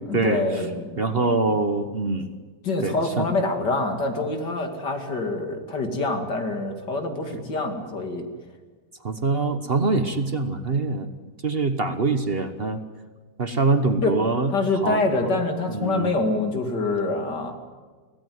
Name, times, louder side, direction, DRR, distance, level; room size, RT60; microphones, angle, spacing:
voice 1, 0.1-1.2 1.5-1.6 2.6-8.3 14.0-14.2 14.5-17.5, left 2 dB, 80° left, 4 dB, 3.1 m, -26 dB
voice 2, 1.0-2.3 2.8-3.3 9.0-11.1 11.4-12.8 13.4-14.5 14.8-15.3 15.7-16.1, right 3 dB, 40° right, 9 dB, 1.2 m, -24 dB
24.5 x 16.5 x 9.5 m, 1.4 s
omnidirectional pair, 1.8 m